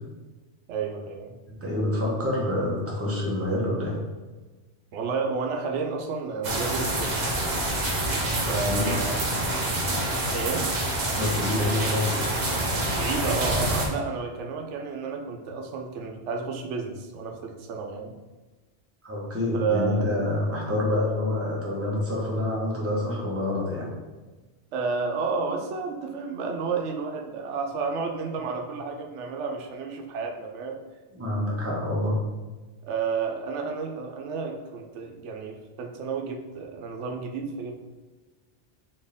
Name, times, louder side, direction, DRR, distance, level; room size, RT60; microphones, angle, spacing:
voice 1, 0.7-1.4 1.6-1.8 4.9-7.4 8.5-9.1 10.3-10.7 12.9-18.1 19.5-20.0 24.7-30.8 32.8-37.7, right 5 dB, 90° right, 2 dB, 0.9 m, -31 dB
voice 2, 1.5-4.0 8.4-8.9 9.3-9.4 9.9-10.1 11.0-12.3 19.0-23.9 31.1-32.2, left 1 dB, 15° right, -4 dB, 0.9 m, -27 dB
sound 1, 6.4-13.9, right 1 dB, 45° right, 0.8 m, -27 dB
4.4 x 2.9 x 3.5 m, 1.2 s
omnidirectional pair, 1.2 m